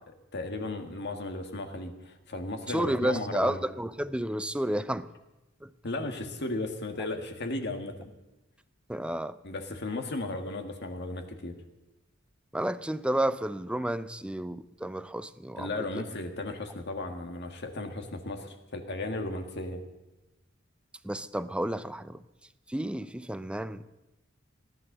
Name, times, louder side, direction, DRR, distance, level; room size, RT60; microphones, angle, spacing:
voice 1, 0.1-3.6 5.8-8.1 9.4-11.6 15.6-19.8, left 2 dB, 55° left, 5 dB, 1.7 m, -35 dB
voice 2, 2.7-5.1 5.6-5.7 8.9-9.4 12.5-16.0 21.0-22.2 22.7-23.9, right 1 dB, 5° right, 14 dB, 0.4 m, -31 dB
17.0 x 11.0 x 6.7 m, 1.0 s
head